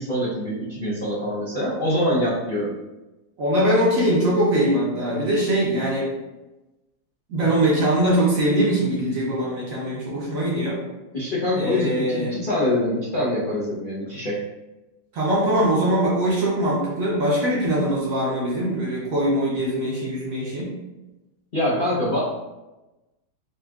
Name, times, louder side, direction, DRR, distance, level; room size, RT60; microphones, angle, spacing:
voice 1, 0.0-2.7 7.4-7.5 11.1-14.4 21.5-22.2, left 1 dB, 60° left, -9 dB, 0.5 m, -24 dB
voice 2, 3.4-6.1 7.3-10.8 11.6-12.3 15.1-20.7, right 1 dB, 60° right, -5 dB, 1.0 m, -22 dB
4.4 x 2.3 x 2.3 m, 1.1 s
omnidirectional pair, 2.0 m